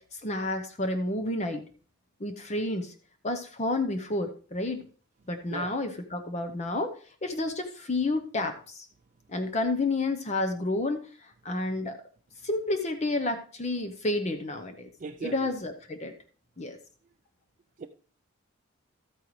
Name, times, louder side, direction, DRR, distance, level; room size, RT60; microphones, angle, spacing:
voice 1, 0.0-1.6 2.2-2.9 3.2-4.9 5.3-6.9 7.2-8.9 9.3-12.0 12.4-14.9 15.2-16.1 16.6-16.8, left 2 dB, 30° left, 0.8 m, -30 dB
voice 2, 15.0-15.5 17.8-17.9, right 4 dB, 35° right, 0.4 m, -38 dB
13.0 x 8.9 x 3.1 m
head